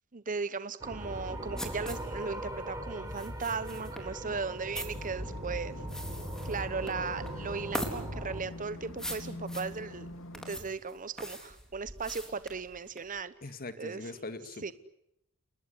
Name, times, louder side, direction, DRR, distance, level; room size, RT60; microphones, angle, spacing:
voice 1, 0.1-5.8 6.4-10.1 10.3-13.3 13.8-14.1 14.6-14.7, right 4 dB, 35° right, 14 dB, 1.0 m, -37 dB
sound 1, 0.8-8.4, equal, 15° right, 5.2 m, -40 dB
sound 2, 1.0-13.2, equal, 5° left, 4.1 m, -42 dB
sound 3, 4.8-10.6, left 1 dB, 60° left, 2.5 m, -44 dB
voice 2, 13.4-14.7, left 2 dB, 40° left, 11 dB, 1.9 m, -42 dB
29.5 x 20.0 x 9.7 m, 0.80 s
head